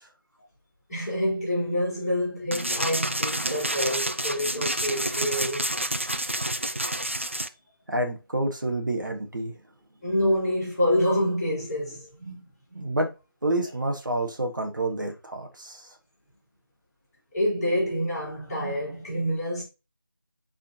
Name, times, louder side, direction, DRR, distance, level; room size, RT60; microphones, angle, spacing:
voice 1, 0.9-5.7 10.0-12.9 17.3-19.6, equal, 15° left, 3.2 m, -27 dB
sound 1, 2.5-7.5, right 1 dB, 35° right, 0.3 m, -29 dB
voice 2, 7.9-9.5 12.7-13.1 13.4-15.8, right 1 dB, 55° right, 1.7 m, -28 dB
8.2 x 4.3 x 2.9 m
figure-of-eight pair, 170°, 12 cm